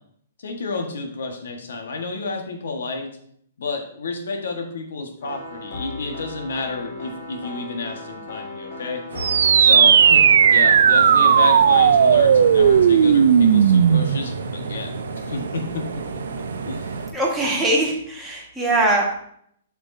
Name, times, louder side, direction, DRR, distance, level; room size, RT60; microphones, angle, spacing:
voice 1, 0.4-3.1 3.6-9.0 9.6-16.2 16.6-17.0, left 3 dB, 80° left, 3 dB, 1.5 m, -30 dB
sound 1, 5.2-12.8, left 1 dB, 60° left, 1.9 m, -35 dB
sound 2, 9.1-17.1, right 4 dB, 85° right, 0.8 m, -32 dB
sound 3, 9.2-14.2, right 8 dB, 70° right, 0.3 m, -14 dB
voice 2, 17.1-19.1, right 2 dB, ahead, -5 dB, 1.5 m, -21 dB
7.4 x 6.2 x 2.7 m, 0.67 s
hypercardioid pair, 155°, 0 cm